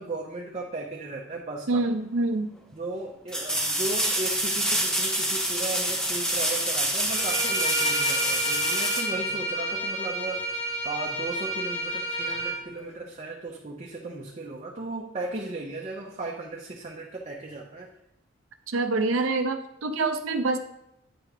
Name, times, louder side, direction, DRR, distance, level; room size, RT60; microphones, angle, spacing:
voice 1, 0.0-1.8 2.7-17.9, right 2 dB, 35° right, -2 dB, 0.8 m, -36 dB
voice 2, 1.7-2.5 18.7-20.6, right 3 dB, 90° right, 7 dB, 0.6 m, -26 dB
sound 1, 1.9-2.0 3.3-9.9 12.8-12.9, right 1 dB, 5° left, 0.9 m, -27 dB
Bowed string instrument, 7.1-12.6, right 1 dB, 35° left, 1.9 m, -30 dB
8.7 x 3.3 x 4.9 m, 0.81 s
head